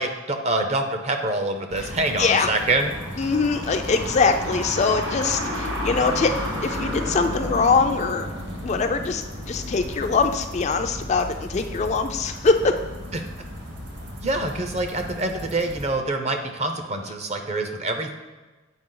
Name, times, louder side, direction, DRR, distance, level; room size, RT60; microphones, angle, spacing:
voice 1, 0.0-2.9 13.1-13.2 14.2-18.1, right 2 dB, 35° right, 6 dB, 0.6 m, -26 dB
sound 1, 1.7-15.9, equal, 60° right, 1.3 m, -33 dB
voice 2, 2.2-2.5 3.2-6.3 6.6-8.3 8.6-12.7, left 4 dB, 35° left, 6 dB, 0.3 m, -22 dB
7.9 x 4.7 x 3.8 m, 1.2 s
head